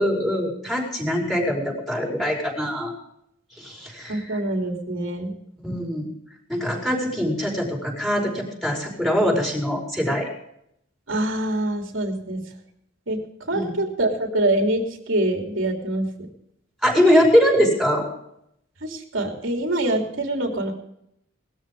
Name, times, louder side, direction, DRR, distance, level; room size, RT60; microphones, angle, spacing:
voice 1, 0.0-2.9 3.6-4.4 5.6-6.1 6.5-10.3 13.5-13.7 16.8-18.1, equal, ahead, -1 dB, 4.9 m, -22 dB
voice 2, 4.1-5.3 11.1-12.4 13.1-13.2 13.5-16.1 18.8-20.7, right 1 dB, 80° right, 2 dB, 3.1 m, -25 dB
19.5 x 13.5 x 3.6 m, 0.75 s
head